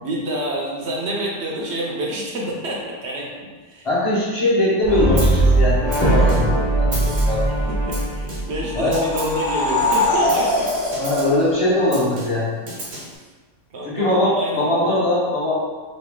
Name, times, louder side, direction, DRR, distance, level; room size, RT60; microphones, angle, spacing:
voice 1, 0.0-3.9 7.7-10.7 12.9-13.0 13.7-15.0, right 1 dB, 60° right, -2 dB, 0.8 m, -28 dB
voice 2, 3.8-7.5 8.7-9.0 11.0-12.5 13.8-15.6, left 1 dB, 25° left, -8 dB, 1.0 m, -21 dB
Brass instrument, 4.8-9.1, right 2 dB, 10° left, 0.6 m, -19 dB
Snare drum, 5.2-5.5 5.9-6.6 6.9-7.5 7.9-8.6 8.9-9.4 9.9-11.4 11.9-13.2, right 1 dB, 80° right, 1.4 m, -34 dB
sound 1, 8.6-12.2, left 2 dB, 60° left, 0.4 m, -23 dB
3.1 x 2.6 x 3.7 m, 1.4 s
omnidirectional pair, 1.4 m